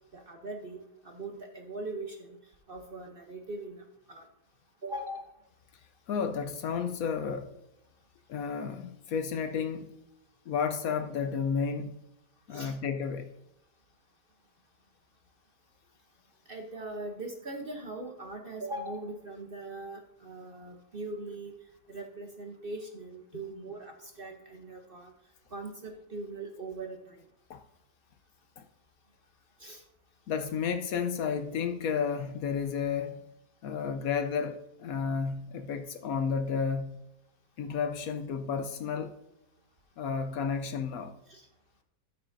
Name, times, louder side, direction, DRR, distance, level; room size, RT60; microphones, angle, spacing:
voice 1, 0.1-2.4 2.7-4.3 4.8-5.3 12.5-12.8 16.5-21.5 21.9-25.1 25.5-27.2 29.6-29.8 41.3-41.5, right 2 dB, 45° right, 0.8 m, -41 dB
voice 2, 6.1-7.5 8.3-10.0 10.5-12.0 12.5-13.3 27.5-27.6 28.6-28.7 30.3-33.2 33.6-37.0 37.6-39.2 40.0-41.1, left 6 dB, 70° left, 0.9 m, -32 dB
13.0 x 5.8 x 2.6 m
omnidirectional pair, 1.8 m